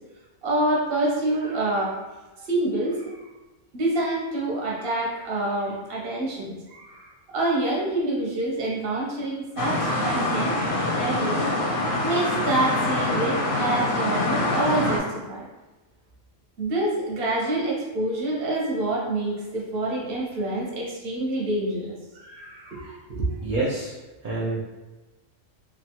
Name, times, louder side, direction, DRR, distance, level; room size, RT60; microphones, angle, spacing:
voice 1, 0.4-2.0 2.4-3.1 3.7-11.4 12.0-15.5 16.6-23.3, right 1 dB, 55° right, -4 dB, 0.9 m, -27 dB
sound 1, 9.6-15.0, left 1 dB, 55° left, 0.6 m, -25 dB
voice 2, 23.4-24.0 24.2-24.6, right 2 dB, 70° right, -5 dB, 0.4 m, -27 dB
2.8 x 2.3 x 2.8 m, 1.2 s
omnidirectional pair, 1.3 m